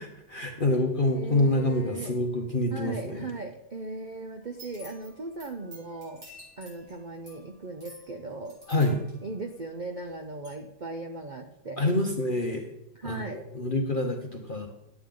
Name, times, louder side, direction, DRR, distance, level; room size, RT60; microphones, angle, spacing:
voice 1, 0.0-3.3 8.7-9.0 11.8-12.6 13.0-14.7, left 1 dB, 35° left, 1 dB, 0.9 m, -27 dB
voice 2, 1.1-2.4 2.7-6.2 6.6-8.6 9.2-11.8 13.0-13.4, right 3 dB, 70° right, 4 dB, 0.4 m, -38 dB
sound 1, 4.4-10.1 10.4-10.5, equal, 55° right, 5.0 m, -51 dB
11.0 x 8.9 x 3.8 m, 0.87 s
omnidirectional pair, 1.8 m